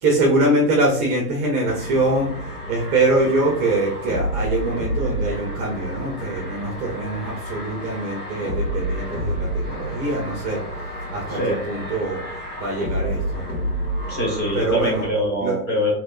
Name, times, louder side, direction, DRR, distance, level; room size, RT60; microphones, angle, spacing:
voice 1, 0.0-10.6 11.1-13.4 14.5-15.0 15.4-15.6, right 2 dB, 25° right, -1 dB, 0.6 m, -23 dB
sound 1, 1.7-15.1, equal, 80° left, 1.5 m, -29 dB
voice 2, 14.1-15.9, left 1 dB, 20° left, -2 dB, 1.2 m, -24 dB
3.3 x 2.8 x 2.5 m, 0.62 s
figure-of-eight pair, 110°, 45 cm